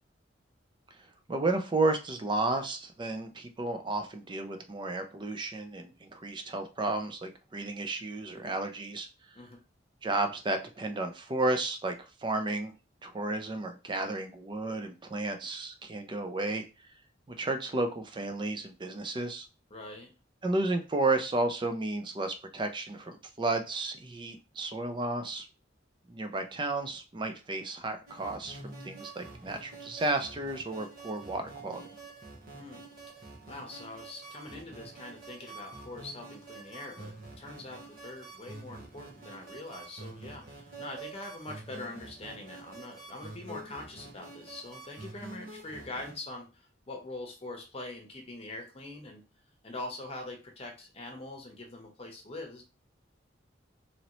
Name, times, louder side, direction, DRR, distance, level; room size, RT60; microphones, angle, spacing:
voice 1, 1.3-9.1 10.0-11.9 12.2-12.7 13.0-16.6 17.4-19.4 20.4-25.5 26.1-31.9, right 2 dB, 25° right, 7 dB, 0.4 m, -32 dB
voice 2, 19.7-20.1 32.5-32.8 33.5-49.2 49.6-52.6, left 2 dB, 30° left, 1 dB, 0.8 m, -43 dB
sound 1, 28.1-46.2, right 3 dB, 50° right, 0.9 m, -47 dB
2.9 x 2.7 x 3.0 m, 0.31 s
head